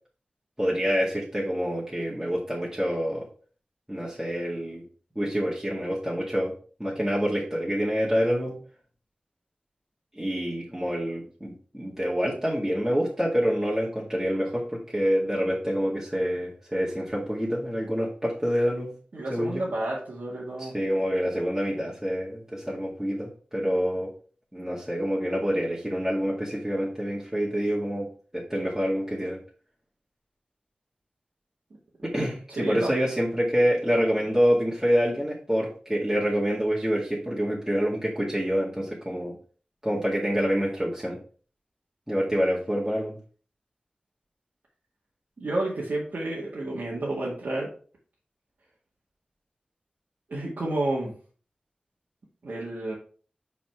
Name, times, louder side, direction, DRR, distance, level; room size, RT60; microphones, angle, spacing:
voice 1, 0.6-3.3 3.9-4.8 5.2-6.5 6.8-8.6 10.1-18.9 19.3-19.6 20.6-24.1 24.5-28.1 28.3-29.4 32.0-39.4 39.8-41.2 42.1-43.2, equal, 10° right, -6 dB, 2.1 m, -27 dB
voice 2, 19.1-20.7 32.6-33.0 45.4-47.7 50.3-51.1 52.4-52.9, right 2 dB, 85° right, -6 dB, 2.0 m, -30 dB
5.9 x 4.2 x 5.8 m, 0.42 s
wide cardioid pair, 70°, 3 cm